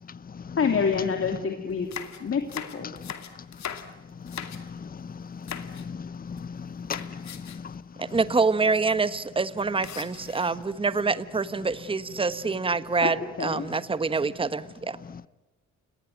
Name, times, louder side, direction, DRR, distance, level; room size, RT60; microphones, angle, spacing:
voice 1, 0.6-1.9 2.2-3.0 13.0-13.7, left 6 dB, 45° left, 2.7 m, -27 dB
sound 1, 1.7-4.9 5.4-5.9 6.1-6.6 6.9-7.7 8.1-8.2 8.4-8.6 9.8-10.7 11.4-12.0, left 8 dB, 65° left, 2.5 m, -40 dB
voice 2, 4.4-7.5, left 6 dB, 30° left, 0.8 m, -38 dB
voice 3, 8.0-15.0, right 4 dB, 20° right, 1.2 m, -26 dB
29.0 x 19.5 x 9.2 m
cardioid pair, 90°, 30 cm